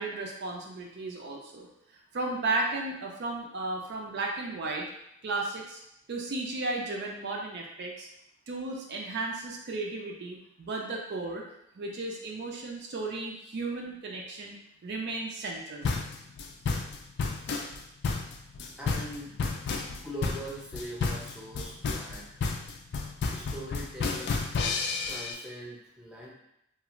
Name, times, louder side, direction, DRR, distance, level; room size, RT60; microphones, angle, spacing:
voice 1, 0.0-1.7 2.1-4.9 5.2-5.8 6.1-8.1 8.5-11.4 11.8-14.6 14.8-15.9, right 2 dB, 55° right, -1 dB, 0.4 m, -34 dB
sound 1, 15.8-25.3, left 4 dB, 60° left, 0.3 m, -31 dB
voice 2, 18.2-22.3 23.3-24.4 25.1-26.3, right 1 dB, 5° right, -5 dB, 0.6 m, -42 dB
2.4 x 2.4 x 2.9 m, 0.79 s
head